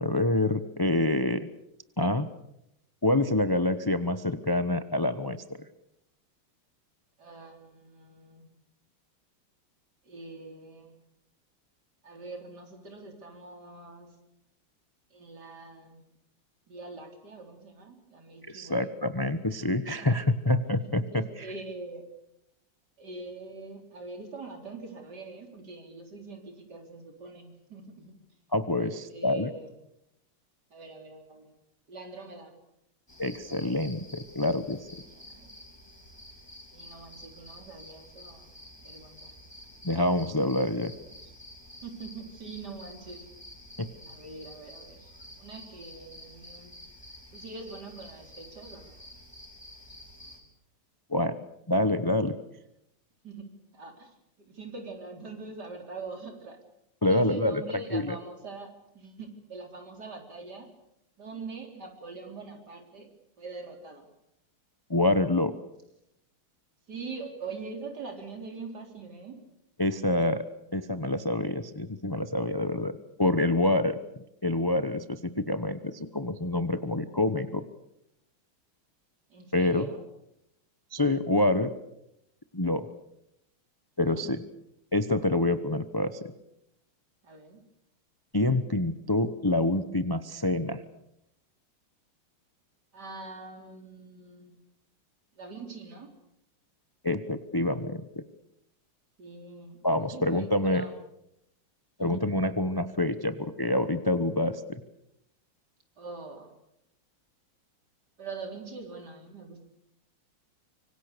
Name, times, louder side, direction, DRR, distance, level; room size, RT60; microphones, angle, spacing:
voice 1, 0.0-1.5 2.0-2.3 3.0-5.4 18.5-21.5 28.5-29.5 33.2-34.9 39.8-40.9 43.8-43.9 51.1-51.4 51.7-52.4 57.0-57.6 57.9-58.2 64.9-65.6 69.8-70.4 70.7-72.9 73.2-74.0 74.4-77.6 79.5-79.9 80.9-81.7 82.5-82.9 84.0-84.4 84.9-86.3 88.3-90.8 97.0-98.2 99.8-100.8 102.0-104.8, left 1 dB, 30° left, 11 dB, 0.4 m, -27 dB
voice 2, 7.2-8.5 10.0-10.9 12.0-14.2 15.1-16.0 16.7-19.0 19.3-19.4 19.9-20.2 21.1-22.1 23.0-28.1 28.8-29.7 30.7-31.5 31.9-32.6 35.0-35.6 36.7-38.5 38.8-39.4 40.7-41.2 41.8-43.3 44.1-45.1 45.4-46.7 47.3-49.0 53.2-53.5 53.7-56.6 57.0-60.7 61.2-63.1 63.4-64.1 66.9-69.4 79.3-80.0 84.1-84.3 87.2-87.6 92.9-94.6 95.3-96.1 99.2-100.9 102.0-102.2 106.0-106.5 108.2-109.6, right 3 dB, 50° right, 4 dB, 4.3 m, -43 dB
sound 1, 33.1-50.4, left 1 dB, 10° left, 4.2 m, -49 dB
25.5 x 24.5 x 6.8 m, 0.81 s
omnidirectional pair, 2.4 m